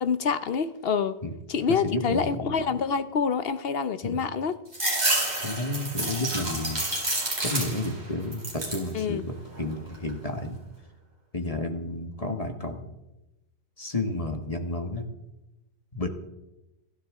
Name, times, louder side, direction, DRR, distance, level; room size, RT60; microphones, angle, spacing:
voice 1, 0.0-1.2 1.5-4.6 8.9-9.2, left 6 dB, 65° left, 12 dB, 1.0 m, -27 dB
voice 2, 1.7-2.5 4.0-4.2 5.4-6.8 7.4-10.6 11.3-12.9 13.8-15.1 15.9-16.1, left 2 dB, 35° left, 4 dB, 1.6 m, -31 dB
sound 1, 4.7-8.0 8.3-8.9 9.4-10.1, right 1 dB, 40° right, 4.2 m, -29 dB
28.0 x 12.0 x 3.7 m, 0.97 s
omnidirectional pair, 1.1 m